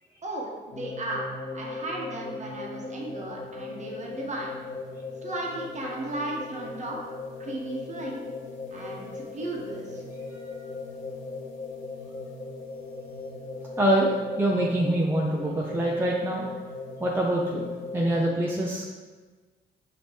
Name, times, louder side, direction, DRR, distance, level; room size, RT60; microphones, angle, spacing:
voice 1, 0.2-1.3 1.5-4.6 5.2-7.0 7.4-8.2 8.7-10.0, right 2 dB, 35° right, -2 dB, 1.0 m, -35 dB
sound 1, 0.7-18.3, left 3 dB, 70° left, 0.8 m, -38 dB
voice 2, 10.3-10.6 13.8-16.4 17.0-17.7 17.9-18.9, right 1 dB, 10° right, -3 dB, 0.5 m, -25 dB
5.1 x 2.9 x 3.1 m, 1.4 s
cardioid pair, 90°, 20 cm